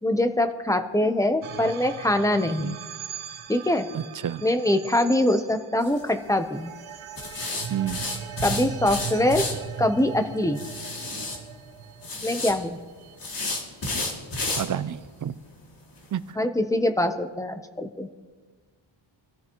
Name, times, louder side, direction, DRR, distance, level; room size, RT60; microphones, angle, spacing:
voice 1, 0.0-2.8 3.5-3.9 4.4-6.7 8.4-9.4 9.8-10.6 12.2-12.8 16.4-18.1, left 1 dB, 5° left, 8 dB, 0.7 m, -23 dB
sound 1, 1.4-13.8, right 8 dB, 80° right, 1.1 m, -39 dB
voice 2, 3.9-4.4 7.7-8.1 14.6-15.4 16.1-16.4, right 9 dB, 45° right, 15 dB, 0.5 m, -30 dB
sound 2, 5.8-6.1 7.2-9.5 10.6-11.4 12.0-12.5 13.2-14.6 15.0-15.1 15.6-15.7 16.0-16.1, left 2 dB, 45° left, 2.6 m, -31 dB
25.5 x 14.0 x 3.0 m, 1.4 s
wide cardioid pair, 160°, 47 cm